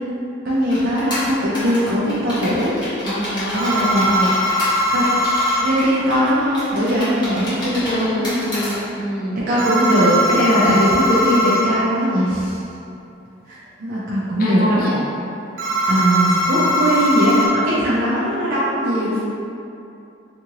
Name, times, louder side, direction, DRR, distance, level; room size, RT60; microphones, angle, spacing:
voice 1, 0.4-2.8 3.5-4.1 4.9-5.0 5.6-8.4 9.5-12.6 13.5-14.9 15.9-19.2, equal, 50° right, -9 dB, 0.5 m, -19 dB
sound 1, 0.7-8.8, equal, 25° left, 1.0 m, -29 dB
voice 2, 3.0-3.7 4.0-4.5 7.8-9.4 14.4-15.0, equal, 50° left, -5 dB, 0.5 m, -26 dB
sound 2, 3.6-5.6 9.6-11.6 15.6-17.5, equal, 90° right, 0.7 m, -20 dB
2.7 x 2.5 x 2.9 m, 2.7 s
head